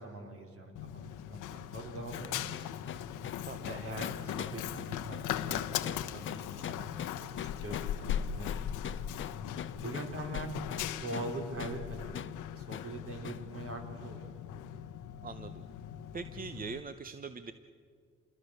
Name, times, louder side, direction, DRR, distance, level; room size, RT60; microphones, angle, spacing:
voice 1, 0.0-2.6 3.7-8.9 9.7-12.2 12.6-14.3, right 2 dB, 50° right, 3 dB, 4.6 m, -43 dB
Run, 0.8-16.8, left 10 dB, 90° left, 1.0 m, -39 dB
sound 1, 2.1-11.3 11.6-11.8 12.1-12.4 12.7-12.9 13.2-13.5, left 9 dB, 40° left, 0.6 m, -42 dB
voice 2, 3.5-3.8 15.2-15.6 16.1-17.5, right 4 dB, 30° right, 10 dB, 0.9 m, -42 dB
27.5 x 21.0 x 6.7 m, 2.1 s
cardioid pair, 90°, 30 cm